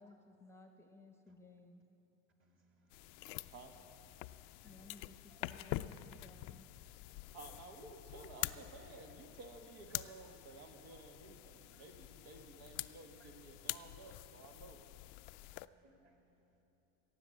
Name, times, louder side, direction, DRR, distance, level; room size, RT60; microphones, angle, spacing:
voice 1, 0.0-1.8 4.6-6.7, left 3 dB, 5° left, 4 dB, 0.9 m, -59 dB
voice 2, 2.4-3.6 4.4-5.4 6.2-6.6 7.2-7.6 9.1-9.2 9.9-10.2 10.5-11.1 11.3-11.4 11.7-11.8 12.2-12.3 13.2-13.3 13.6-13.8 14.7-16.6, right 2 dB, 35° right, 2 dB, 2.3 m, -72 dB
sound 1, 2.9-15.7, left 18 dB, 70° left, 0.5 m, -47 dB
voice 3, 7.3-14.8, right 3 dB, 70° right, 4 dB, 1.4 m, -54 dB
16.0 x 8.0 x 7.6 m, 2.9 s
supercardioid pair, 105°, 36 cm